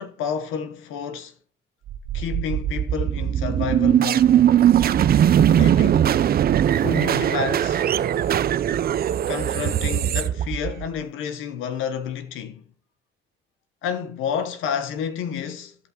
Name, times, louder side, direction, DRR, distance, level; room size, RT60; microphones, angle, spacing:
voice 1, 0.0-1.3 2.1-4.3 5.4-6.2 6.8-7.8 9.3-12.6 13.8-15.7, left 7 dB, 90° left, 1.0 m, -30 dB
sound 1, 1.9-11.0, right 10 dB, 50° right, 0.5 m, -20 dB
14.5 x 5.6 x 2.9 m
cardioid pair, 90°, 20 cm